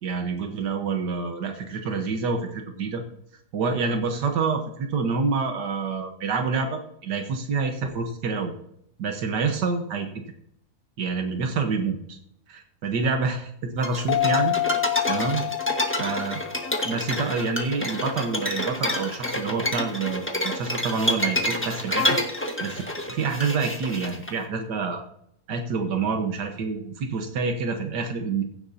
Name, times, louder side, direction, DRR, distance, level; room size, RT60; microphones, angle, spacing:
voice 1, 0.0-3.0 3.5-8.5 9.0-10.1 11.0-12.2 12.5-14.6 15.1-15.4 16.0-16.5 16.8-22.2 22.6-22.8 23.1-25.0 25.5-28.4, right 4 dB, 90° right, 4 dB, 1.8 m, -27 dB
sound 1, 13.8-24.3, left 1 dB, 10° left, 1.3 m, -28 dB
sound 2, 14.1-17.4, left 16 dB, 85° left, 1.3 m, -28 dB
15.5 x 11.5 x 2.8 m, 0.73 s
omnidirectional pair, 1.8 m